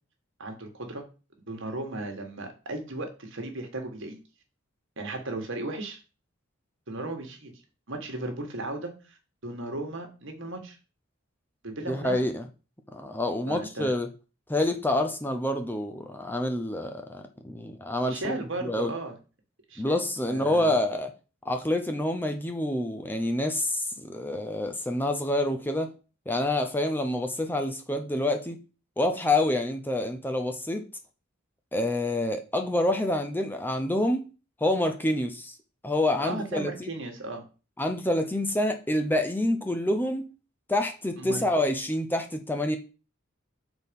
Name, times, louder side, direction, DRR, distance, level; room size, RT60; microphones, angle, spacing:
voice 1, 0.4-1.0 1.5-4.2 5.0-6.0 6.9-7.5 7.9-10.8 11.6-12.3 13.5-13.9 18.1-19.2 19.7-20.0 20.3-20.8 36.2-37.4 41.2-41.4, right 2 dB, 60° right, 1.7 m, -36 dB
voice 2, 11.9-12.5 12.9-14.1 14.5-18.4 18.6-18.9 19.8-21.1 21.5-25.9 26.3-28.6 29.0-30.8 31.7-34.3 34.6-35.6 35.8-36.9 37.8-40.3 40.7-42.8, left 1 dB, 10° left, 0.6 m, -27 dB
6.5 x 4.1 x 5.3 m
head